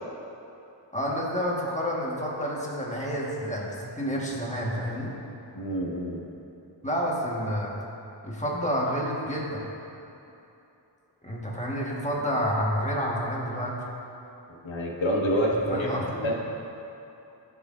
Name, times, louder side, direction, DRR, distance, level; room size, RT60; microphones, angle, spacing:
voice 1, 0.9-5.1 6.8-7.7 8.2-9.7 11.2-13.8 15.3-16.3, equal, 15° left, -4 dB, 1.3 m, -29 dB
voice 2, 5.5-6.3 14.6-15.9 16.2-16.3, equal, 90° left, -2 dB, 1.3 m, -27 dB
16.0 x 5.7 x 2.5 m, 2.9 s
wide cardioid pair, 105°, 45 cm